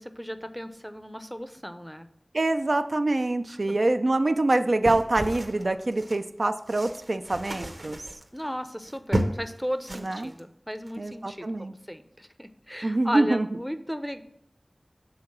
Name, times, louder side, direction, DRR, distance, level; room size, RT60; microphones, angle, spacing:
voice 1, 0.0-2.1 3.7-3.8 8.3-14.2, equal, ahead, 9 dB, 0.5 m, -35 dB
voice 2, 2.3-8.0 9.9-10.3 11.0-11.7 12.8-13.5, right 2 dB, 75° right, 8 dB, 0.4 m, -25 dB
sound 1, 4.8-6.2 6.6-9.5 9.8-10.4 10.8-11.0, right 1 dB, 45° right, 0.8 m, -33 dB
6.4 x 3.8 x 5.8 m, 0.74 s
wide cardioid pair, 45°, 0 cm